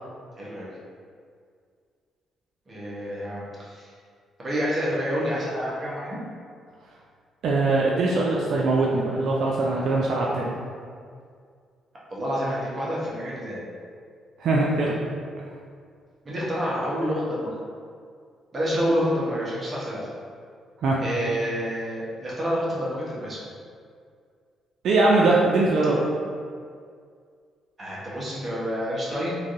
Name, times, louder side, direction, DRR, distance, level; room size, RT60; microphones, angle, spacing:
voice 1, 0.4-0.7 2.7-3.9 4.4-6.2 12.1-13.6 16.2-17.5 18.5-20.1 21.0-23.4 27.8-29.3, equal, 35° right, -6 dB, 0.9 m, -28 dB
voice 2, 7.4-10.5 14.4-15.0 20.8-21.0 24.8-26.0, right 2 dB, 70° right, -4 dB, 0.4 m, -21 dB
3.2 x 2.5 x 2.5 m, 2.1 s
cardioid pair, 90°, 0 cm